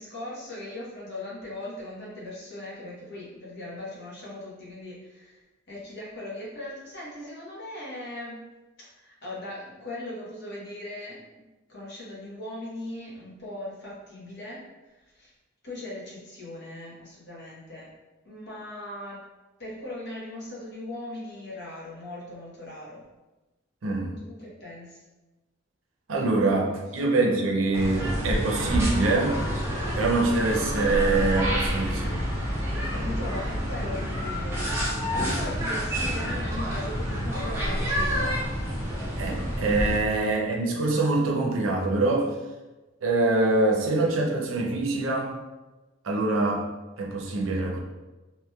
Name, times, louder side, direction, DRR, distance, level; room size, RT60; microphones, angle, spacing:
voice 1, 0.0-8.4 8.8-11.2 11.7-15.3 15.6-17.9 18.2-19.2 19.6-23.0 24.2-25.0 32.9-38.4 40.1-40.2, left 1 dB, 60° left, -6 dB, 1.0 m, -39 dB
voice 2, 23.8-24.2 26.1-29.4 29.9-32.2 39.2-42.3 43.0-45.3 46.0-46.6 47.0-47.8, right 2 dB, 85° right, -1 dB, 0.6 m, -24 dB
sound 1, 27.7-40.0, equal, 15° right, 0.7 m, -28 dB
3.1 x 2.8 x 2.2 m, 1.1 s
head